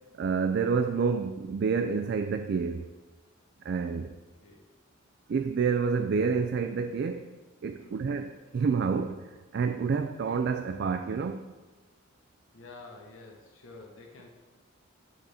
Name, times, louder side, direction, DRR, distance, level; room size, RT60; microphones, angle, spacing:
voice 1, 0.1-2.9 3.6-4.1 5.3-7.3 7.6-11.4, right 5 dB, 55° right, 0.3 m, -28 dB
voice 2, 7.8-8.1 12.5-14.3, left 3 dB, 70° left, 1.0 m, -49 dB
10.0 x 4.1 x 4.9 m
head